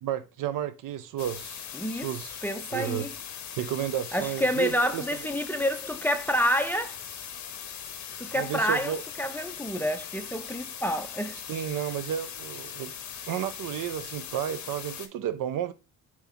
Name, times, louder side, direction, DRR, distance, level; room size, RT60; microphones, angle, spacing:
voice 1, 0.0-2.4 2.7-3.1 3.6-5.0 8.3-9.0 11.5-12.9 13.3-15.7, right 10 dB, 55° right, 0.5 m, -32 dB
sound 1, 1.2-15.1, left 8 dB, 45° left, 0.8 m, -40 dB
voice 2, 1.7-2.1 2.4-3.1 4.1-6.9 8.2-11.4, equal, 5° left, 0.5 m, -28 dB
4.3 x 2.9 x 4.0 m
hypercardioid pair, 55°, 40 cm